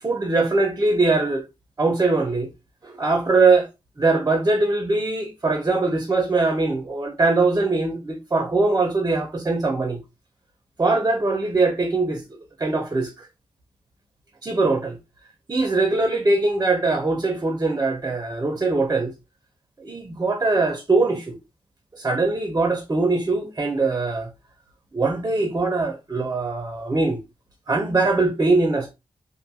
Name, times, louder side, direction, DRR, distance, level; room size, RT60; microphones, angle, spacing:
voice 1, 0.0-1.4 1.8-2.5 2.8-3.7 4.0-10.0 10.8-12.2 12.6-13.1 14.4-15.0 15.5-19.1 19.8-21.4 21.9-24.3 24.9-27.2 27.7-28.9, right 3 dB, 30° right, 0.6 m, -21 dB
2.5 x 2.3 x 2.7 m
cardioid pair, 65°, 10 cm